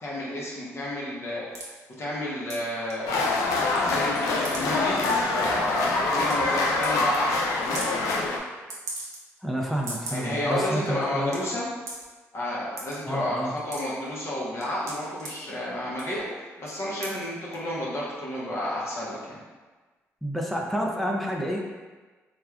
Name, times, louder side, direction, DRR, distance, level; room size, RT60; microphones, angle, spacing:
voice 1, 0.0-1.7 2.0-3.1 3.7-7.8 10.1-11.7 12.3-19.4, left 1 dB, 50° left, -6 dB, 0.7 m, -31 dB
sound 1, 1.5-1.7 2.5-2.6 2.9-3.5 3.8-4.6 5.0-5.2 5.8-5.9 6.2-6.3 6.7-6.9 7.1-7.2 7.6-7.9 8.7-9.4 9.7-10.3 10.7-10.8 11.0-11.4 11.9-12.1 12.8-13.0 13.4-14.1 14.6-15.3 15.9-16.2 16.6-16.7 17.0-17.2 17.5-17.6, right 2 dB, 70° right, 0.7 m, -37 dB
sound 2, 3.1-8.4, left 3 dB, 90° left, 0.3 m, -25 dB
voice 2, 9.4-11.4 13.1-13.5 20.2-21.7, equal, 5° left, -1 dB, 0.4 m, -29 dB
3.1 x 2.3 x 2.3 m, 1.3 s
cardioid pair, 70°, 6 cm